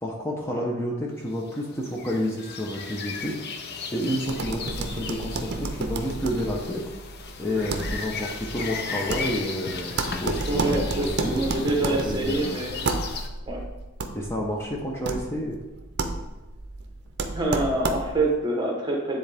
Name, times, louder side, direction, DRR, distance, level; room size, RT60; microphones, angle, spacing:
voice 1, 0.0-3.4 3.9-6.9 7.4-11.5 11.8-12.6 14.1-15.6, equal, 15° left, -2 dB, 0.8 m, -30 dB
sound 1, 1.4-13.3, left 5 dB, 55° left, 0.6 m, -36 dB
sound 2, 4.2-18.3, right 3 dB, 55° right, 0.6 m, -32 dB
voice 2, 10.5-12.8 13.5-13.6 17.3-19.2, right 2 dB, 20° right, 0 dB, 1.2 m, -26 dB
9.8 x 3.9 x 3.5 m, 1.1 s
head